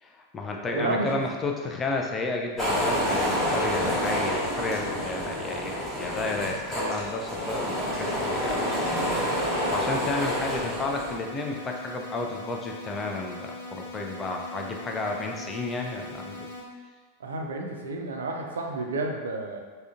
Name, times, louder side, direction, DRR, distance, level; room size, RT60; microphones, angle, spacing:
voice 1, 0.0-8.8 9.4-16.5, left 3 dB, 20° left, 1 dB, 0.4 m, -32 dB
voice 2, 0.6-1.1 17.2-19.6, right 2 dB, 65° right, 1 dB, 0.4 m, -31 dB
sound 1, 2.6-11.2, equal, 5° left, 1.0 m, -28 dB
sound 2, 7.6-16.6, left 2 dB, 55° left, 0.8 m, -41 dB
3.6 x 2.1 x 2.4 m, 1.4 s
figure-of-eight pair, 90°, 0 cm